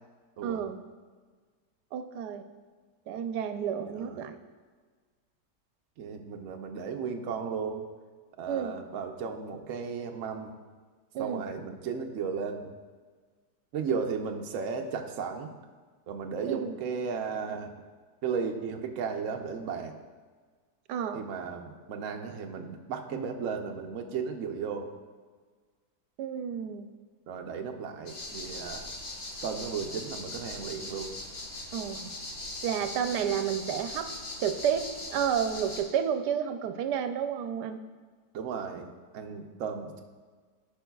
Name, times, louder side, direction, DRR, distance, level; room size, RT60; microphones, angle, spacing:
voice 1, 0.4-0.8 1.9-2.4 3.1-4.4 8.5-8.7 11.1-11.4 16.5-16.8 20.9-21.3 26.2-26.9 31.7-32.1 32.6-34.1 34.4-37.8, right 8 dB, 90° right, 8 dB, 1.2 m, -31 dB
voice 2, 3.9-4.3 6.0-7.9 8.4-10.5 11.2-12.7 13.7-15.5 16.1-17.7 18.2-20.0 21.1-24.9 27.3-28.9 29.4-31.1 38.3-40.0, right 6 dB, 60° right, 4 dB, 1.0 m, -35 dB
sound 1, 28.1-35.8, left 2 dB, 85° left, 2.2 m, -40 dB
15.0 x 5.4 x 2.3 m, 1.5 s
omnidirectional pair, 1.7 m